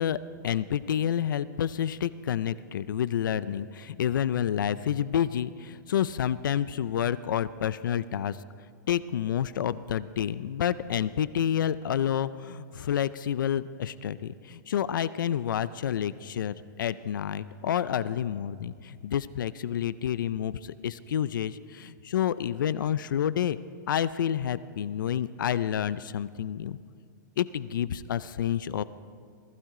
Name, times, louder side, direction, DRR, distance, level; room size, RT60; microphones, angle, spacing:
voice 1, 0.0-8.4 8.9-23.6 23.9-26.8 27.4-28.8, left 9 dB, 90° left, 16 dB, 0.5 m, -29 dB
19.5 x 15.5 x 3.8 m, 2.2 s
hypercardioid pair, 165°, 10 cm